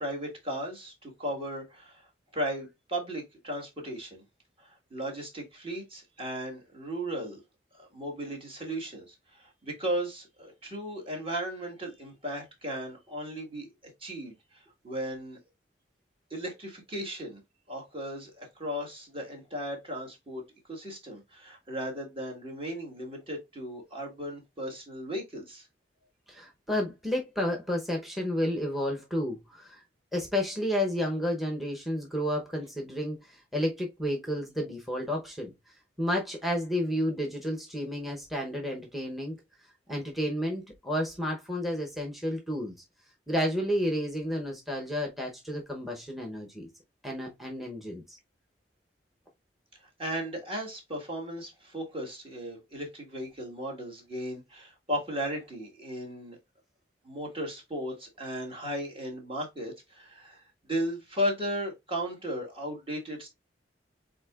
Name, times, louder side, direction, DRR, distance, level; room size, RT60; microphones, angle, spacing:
voice 1, 0.0-2.1 2.3-4.2 4.6-7.4 7.7-13.7 14.0-15.4 16.3-17.4 17.7-20.4 20.7-25.7 50.0-56.4 57.0-63.3, equal, 30° right, 1.5 m, -36 dB
voice 2, 26.3-29.8 30.1-35.5 36.0-39.4 39.9-42.7 43.3-46.7 47.0-48.2, equal, ahead, 0.8 m, -31 dB
7.8 x 2.8 x 2.3 m
head